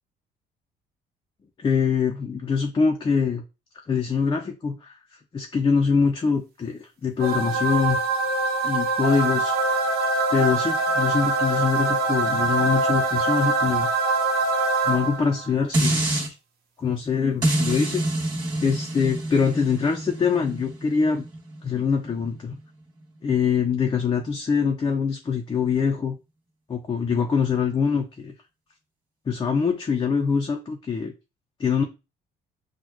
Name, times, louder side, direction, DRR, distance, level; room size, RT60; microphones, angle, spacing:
voice 1, 1.6-3.4 3.9-4.9 5.3-8.0 8.6-9.5 10.3-13.9 14.9-16.3 16.8-18.0 18.6-21.2 21.6-22.6 23.2-26.2 26.7-28.3 29.3-31.1 31.6-31.8, left 6 dB, 25° left, 2 dB, 0.6 m, -24 dB
sound 1, 7.2-15.5, right 3 dB, 65° right, 1.2 m, -23 dB
sound 2, 15.7-16.3 17.4-22.6 23.0-23.1, right 1 dB, 25° right, 2.0 m, -27 dB
6.2 x 2.3 x 3.0 m, 0.28 s
cardioid pair, 110°, 17 cm